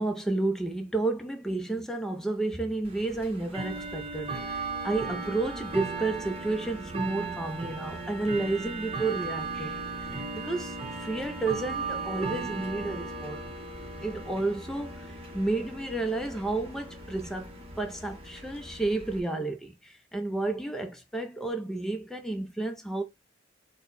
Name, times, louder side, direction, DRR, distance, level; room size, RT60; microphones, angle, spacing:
voice 1, 0.0-13.4 14.0-23.0, right 2 dB, ahead, 0.5 m, -31 dB
Bell / Tick-tock, 2.8-19.2, right 3 dB, 30° right, 0.9 m, -37 dB
4.5 x 2.1 x 4.0 m
head